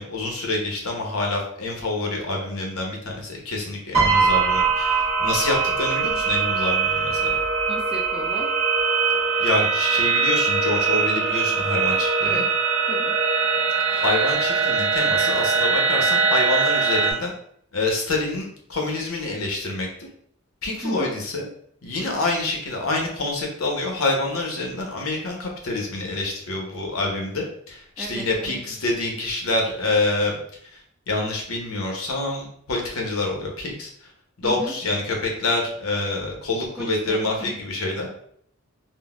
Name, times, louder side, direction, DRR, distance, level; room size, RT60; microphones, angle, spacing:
voice 1, 0.0-7.4 9.4-12.4 13.9-17.3 17.7-20.1 20.6-21.5 21.8-30.4 31.1-33.9 34.4-38.1, left 2 dB, 90° left, 1 dB, 0.8 m, -27 dB
Piano, 3.9-6.3 7.3-7.6, right 5 dB, 30° right, 1.0 m, -22 dB
sound 1, 4.1-17.1, right 5 dB, 75° right, 0.7 m, -22 dB
voice 2, 7.7-8.5 12.2-12.4 12.9-13.1 20.8-21.1 28.0-28.6 34.4-34.7 36.8-37.5, right 1 dB, 5° right, 0 dB, 0.4 m, -34 dB
3.7 x 2.1 x 2.3 m, 0.65 s
head